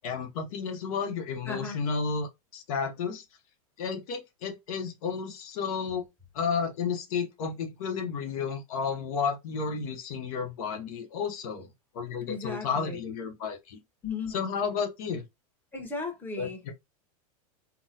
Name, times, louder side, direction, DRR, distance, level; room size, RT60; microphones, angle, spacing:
voice 1, 0.0-3.2 3.8-6.0 6.3-11.7 11.9-13.8 14.3-15.2 16.4-16.7, left 5 dB, 65° left, 0.8 m, -32 dB
voice 2, 1.5-1.8 12.3-13.0 14.0-14.4 15.7-16.6, left 4 dB, 10° left, 1.0 m, -36 dB
3.7 x 2.1 x 2.7 m
hypercardioid pair, 115°, 19 cm